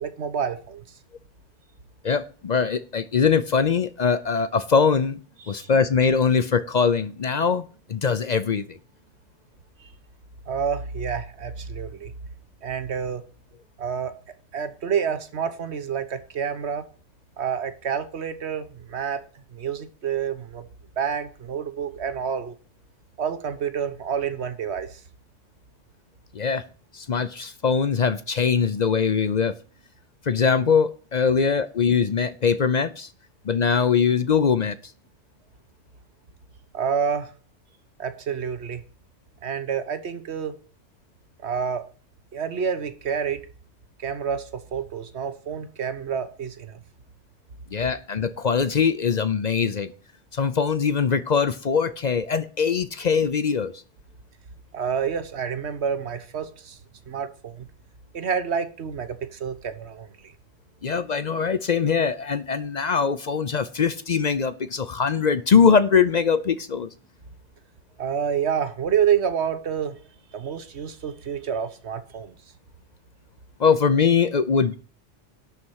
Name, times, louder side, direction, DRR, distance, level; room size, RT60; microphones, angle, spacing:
voice 1, 0.0-0.8 5.5-5.7 9.8-9.9 10.5-12.1 12.6-13.2 13.8-14.1 14.5-16.9 17.4-20.6 21.0-22.6 23.2-25.0 36.7-37.3 38.0-38.8 39.4-40.6 41.4-41.8 42.3-43.5 44.0-46.8 54.7-56.8 57.1-57.7 58.1-60.3 68.0-70.0 70.3-72.3, right 7 dB, 65° right, 1.4 m, -28 dB
voice 2, 2.0-5.2 5.5-8.8 26.3-26.6 26.9-29.6 30.3-33.1 33.4-34.8 47.7-49.9 50.3-53.7 60.8-66.9 73.6-74.8, left 6 dB, 50° left, 0.6 m, -22 dB
11.5 x 4.3 x 8.0 m
omnidirectional pair, 1.2 m